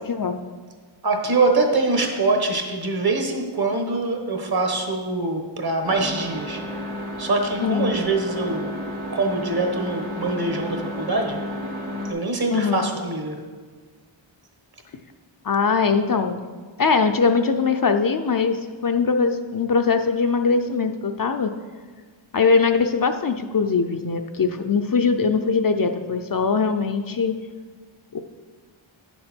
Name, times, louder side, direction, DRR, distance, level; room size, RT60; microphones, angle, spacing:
voice 1, 0.1-0.4 7.6-7.9 12.5-12.9 15.4-16.4 16.8-21.5 22.3-27.4 28.1-28.2, left 5 dB, 45° left, 6 dB, 0.5 m, -21 dB
voice 2, 1.0-8.8 9.1-11.4 12.1-13.4, right 3 dB, 50° right, 3 dB, 1.3 m, -24 dB
sound 1, 5.8-12.1, left 1 dB, 80° right, 1.7 m, -32 dB
9.8 x 6.7 x 4.4 m, 1.5 s
wide cardioid pair, 90°, 48 cm